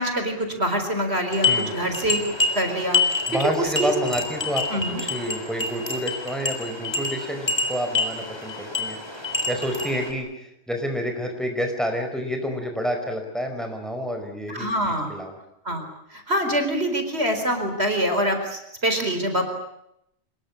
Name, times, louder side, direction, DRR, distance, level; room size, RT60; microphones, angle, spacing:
voice 1, 0.0-3.0 3.3-3.9 4.7-5.0 14.5-15.2 15.6-15.8 16.1-19.4, right 1 dB, 60° right, 6 dB, 4.7 m, -25 dB
sound 1, 1.3-10.1, left 3 dB, 20° left, 3.9 m, -27 dB
voice 2, 3.3-9.0 9.5-15.4, equal, ahead, 4 dB, 4.9 m, -29 dB
26.0 x 22.0 x 8.6 m, 0.77 s
omnidirectional pair, 1.2 m